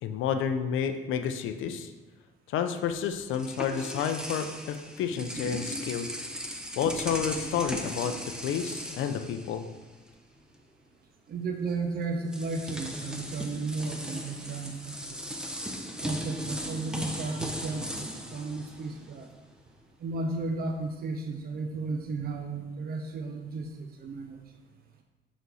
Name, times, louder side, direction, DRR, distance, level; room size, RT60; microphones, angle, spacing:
voice 1, 0.0-1.9 2.5-6.1 6.8-9.7, left 7 dB, 85° left, 8 dB, 0.5 m, -30 dB
sound 1, 3.0-10.1 10.4-10.6 11.7-11.8 12.3-19.4, equal, 5° right, 0.7 m, -38 dB
voice 2, 11.3-15.2 16.0-19.3 20.0-24.4, right 3 dB, 50° right, 4 dB, 0.6 m, -34 dB
6.3 x 4.0 x 4.0 m, 1.2 s
cardioid pair, 90°, 20 cm